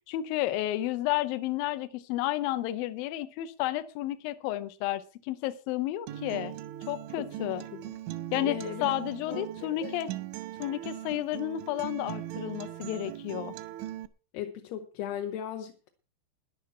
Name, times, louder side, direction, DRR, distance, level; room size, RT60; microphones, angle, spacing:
voice 1, 0.1-6.5 6.9-7.6 8.3-10.1 10.6-13.5, left 14 dB, 85° left, 12 dB, 2.0 m, -31 dB
Acoustic guitar, 6.1-14.1, right 14 dB, 90° right, 3.3 m, -39 dB
voice 2, 7.2-7.9 8.4-8.9 9.2-9.4 9.7-9.9 14.3-15.9, left 9 dB, 70° left, 3 dB, 2.8 m, -38 dB
13.5 x 10.5 x 5.6 m, 0.35 s
omnidirectional pair, 5.4 m